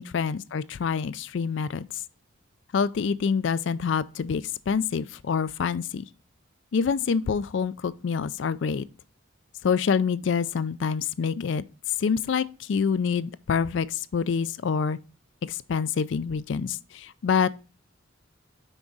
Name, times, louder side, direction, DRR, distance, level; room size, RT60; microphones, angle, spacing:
voice 1, 0.0-1.9 2.7-6.0 6.7-8.8 9.6-11.6 12.0-15.0 15.4-16.8 17.2-17.5, left 6 dB, 65° left, 0.4 m, -26 dB
6.0 x 5.0 x 3.9 m
head